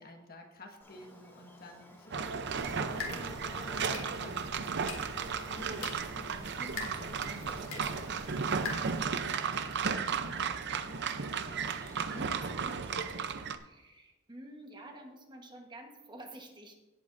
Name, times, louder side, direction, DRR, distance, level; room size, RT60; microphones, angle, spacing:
voice 1, 0.0-12.7, left 1 dB, 45° left, 2 dB, 1.5 m, -52 dB
Buzz, 0.8-13.1, left 1 dB, 10° left, 2.6 m, -52 dB
sound 1, 2.1-13.6, right 6 dB, 55° right, 0.6 m, -34 dB
sound 2, 2.5-9.1, left 3 dB, 65° left, 2.1 m, -44 dB
voice 2, 4.8-5.3 13.6-16.8, right 1 dB, 20° right, 3 dB, 1.2 m, -50 dB
17.0 x 8.5 x 2.6 m, 1.1 s
head